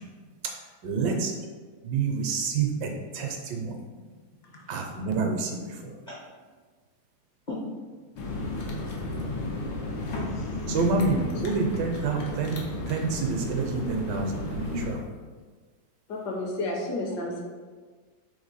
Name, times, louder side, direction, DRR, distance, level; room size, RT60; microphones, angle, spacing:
voice 1, 0.8-1.3 1.8-3.7 4.7-5.9 10.7-15.1, right 4 dB, 75° right, 2 dB, 1.2 m, -28 dB
sound 1, 8.2-14.9, left 2 dB, 90° left, 1.5 m, -33 dB
voice 2, 9.1-9.8 10.1-10.8, left 3 dB, 45° left, -7 dB, 0.5 m, -41 dB
voice 3, 16.1-17.4, left 2 dB, 65° left, -1 dB, 1.2 m, -31 dB
3.6 x 3.2 x 4.0 m, 1.5 s
omnidirectional pair, 2.0 m